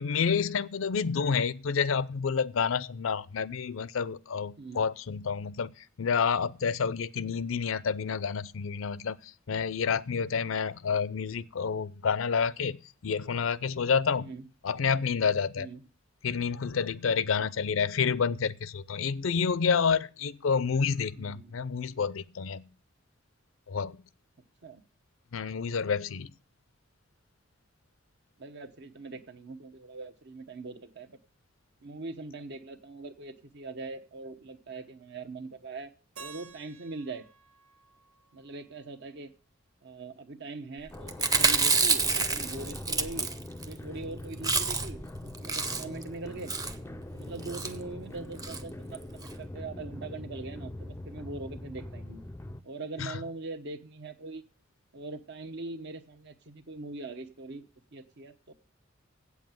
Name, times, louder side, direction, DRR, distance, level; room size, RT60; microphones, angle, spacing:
voice 1, 0.0-5.7 6.0-9.2 9.5-12.8 13.0-14.3 14.6-15.7 16.2-22.6 23.7-24.0 25.3-26.3 53.0-53.1, left 6 dB, 75° left, 0.5 m, -29 dB
voice 2, 14.2-14.5 15.6-15.8 21.1-21.6 24.6-24.8 28.4-31.2 31.8-35.9 36.2-37.2 38.3-39.3 39.8-43.3 43.7-46.5 47.1-52.2 52.6-54.4 54.9-57.7 57.9-58.5, right 3 dB, 60° right, 1.0 m, -42 dB
Keyboard (musical), 36.2-39.1, right 5 dB, 80° right, 1.7 m, -52 dB
sound 1, 40.9-52.6, left 1 dB, 10° left, 0.5 m, -42 dB
Chewing mastication, 41.1-43.7 44.0-44.1 44.3-45.0 45.3-46.0 46.5-46.8 47.4-47.7 48.4-48.6 48.9-49.0 49.2-49.3, right 4 dB, 20° right, 0.7 m, -27 dB
8.4 x 7.3 x 7.5 m
head